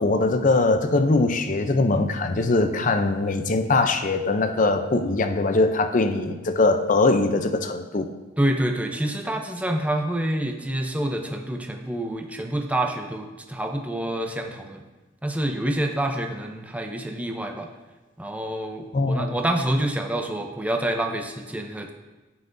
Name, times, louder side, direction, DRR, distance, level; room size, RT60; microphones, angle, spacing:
voice 1, 0.0-8.1 18.9-19.4, left 3 dB, 40° left, 8 dB, 0.6 m, -21 dB
voice 2, 8.4-14.8 15.2-17.7 18.2-21.9, right 1 dB, 10° right, 4 dB, 0.6 m, -27 dB
15.0 x 5.8 x 2.7 m, 1.2 s
head